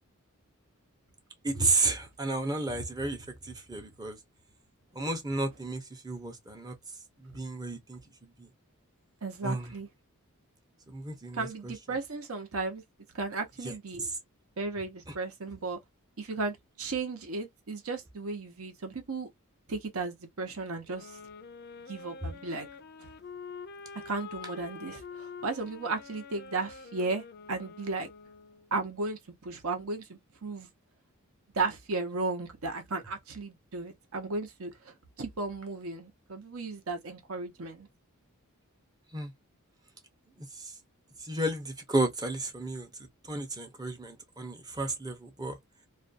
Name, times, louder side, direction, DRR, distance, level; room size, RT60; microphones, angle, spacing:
voice 1, 1.4-4.2 4.9-6.8 7.2-8.5 9.4-9.7 10.9-11.7 13.6-14.1 39.1-39.3 40.4-40.7 41.2-42.9 43.2-45.6, right 2 dB, 20° right, 0.6 m, -32 dB
voice 2, 9.2-9.9 11.3-12.8 13.1-14.0 14.6-15.8 16.2-19.3 19.7-21.2 21.9-22.7 23.0-23.1 24.0-28.1 28.7-30.7 31.5-37.9, right 3 dB, 70° right, 0.8 m, -35 dB
sound 1, 20.9-28.7, left 5 dB, 45° left, 0.4 m, -46 dB
2.5 x 2.2 x 2.4 m
head